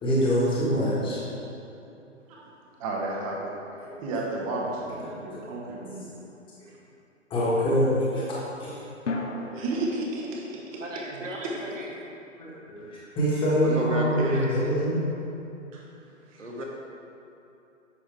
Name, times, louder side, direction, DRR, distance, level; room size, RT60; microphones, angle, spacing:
voice 1, 0.0-1.2 3.9-4.0 7.3-8.2 8.6-8.8 12.4-15.0, equal, 15° left, -7 dB, 1.5 m, -25 dB
voice 2, 2.8-3.5 4.0-6.0 9.5-10.8 11.4-11.5 14.3-14.4 15.7-15.8 16.3-16.4, right 2 dB, 25° right, -3 dB, 1.1 m, -32 dB
sound 1, 4.0-4.2 9.1-13.4, left 2 dB, 70° left, 0.9 m, -40 dB
voice 3, 10.8-11.9 13.6-14.7 16.4-16.6, right 1 dB, 75° right, -1 dB, 1.5 m, -33 dB
9.3 x 6.0 x 3.4 m, 2.9 s
figure-of-eight pair, 130°, 38 cm